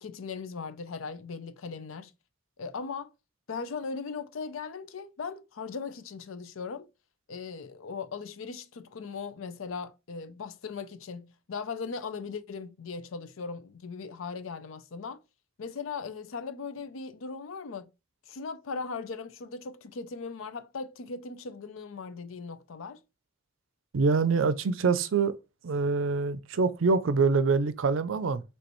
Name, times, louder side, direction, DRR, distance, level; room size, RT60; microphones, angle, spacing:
voice 1, 0.0-2.1 2.6-3.1 3.5-6.9 7.3-15.2 15.6-17.9 18.3-23.0, left 5 dB, 90° left, 0.5 m, -38 dB
voice 2, 23.9-25.3 25.6-28.4, right 4 dB, 75° right, 0.5 m, -25 dB
5.1 x 3.3 x 3.0 m
head